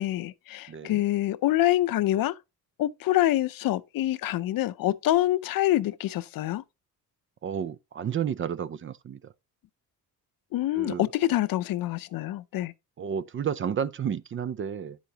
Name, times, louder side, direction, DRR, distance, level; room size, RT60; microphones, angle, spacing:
voice 1, 0.0-2.3 2.8-6.6 10.5-12.7, left 14 dB, 65° left, 0.7 m, -26 dB
voice 2, 0.7-1.0 7.4-9.3 10.7-11.1 13.0-15.0, right 8 dB, 35° right, 0.5 m, -31 dB
10.5 x 8.1 x 2.9 m
cardioid pair, 140°, 38 cm